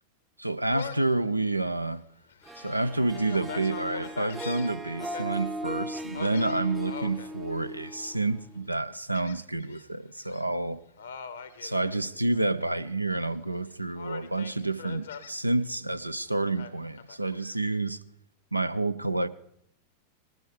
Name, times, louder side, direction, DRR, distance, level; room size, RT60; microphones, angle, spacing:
voice 1, 0.4-2.0 2.6-10.8 11.6-18.0 18.5-19.3, right 2 dB, 85° right, 0.4 m, -29 dB
Gull seagull, 0.7-1.2 1.7-1.8 2.3-5.2 6.1-7.3 7.8-8.3 9.1-9.8 10.2-10.4 11.0-12.5 12.9-13.6 13.9-15.3 16.6-17.6, left 6 dB, 65° left, 0.8 m, -43 dB
Harp, 2.5-8.7, equal, 15° right, 0.6 m, -38 dB
19.0 x 12.5 x 3.4 m
figure-of-eight pair, 90°, 0 cm